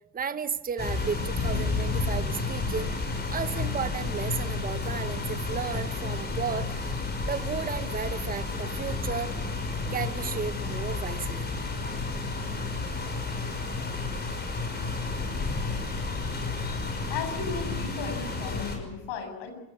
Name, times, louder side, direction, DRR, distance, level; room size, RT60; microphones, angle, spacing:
voice 1, 0.1-2.9 3.3-6.7 7.3-9.3 9.9-11.5, right 6 dB, 20° right, 11 dB, 1.2 m, -33 dB
sound 1, 0.8-18.8, left 3 dB, 20° left, 5.7 m, -31 dB
voice 2, 17.1-19.5, left 5 dB, 65° left, 6 dB, 7.5 m, -35 dB
28.0 x 14.5 x 9.6 m, 0.98 s
supercardioid pair, 125°, 46 cm